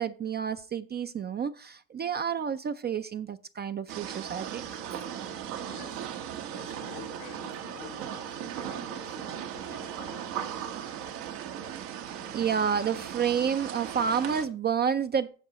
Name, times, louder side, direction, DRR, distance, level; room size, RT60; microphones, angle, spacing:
voice 1, 0.0-5.0 12.3-15.3, right 7 dB, 25° right, 0.4 m, -30 dB
sound 1, 3.9-14.5, right 9 dB, 80° right, 1.4 m, -37 dB
voice 2, 5.6-6.1 6.5-10.5, left 8 dB, 80° left, 2.1 m, -49 dB
16.0 x 5.3 x 2.9 m
hypercardioid pair, 75°, 47 cm